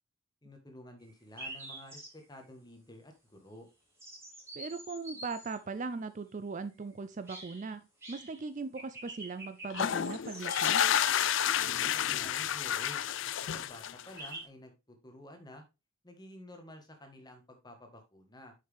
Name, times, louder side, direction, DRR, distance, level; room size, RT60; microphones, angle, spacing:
voice 1, 0.4-3.7 11.8-13.0 13.5-15.6 16.0-18.5, left 1 dB, 20° left, 5 dB, 1.4 m, -51 dB
sound 1, 1.0-1.1 1.4-2.4 4.0-5.6 7.3-7.7 8.0-8.4 8.8-11.1 14.2-14.5, right 1 dB, 10° right, 3.3 m, -46 dB
voice 2, 4.6-10.8, right 4 dB, 35° right, 11 dB, 0.4 m, -39 dB
sound 2, 9.7-14.3, left 10 dB, 55° left, 0.4 m, -30 dB
7.8 x 5.5 x 3.4 m, 0.26 s
head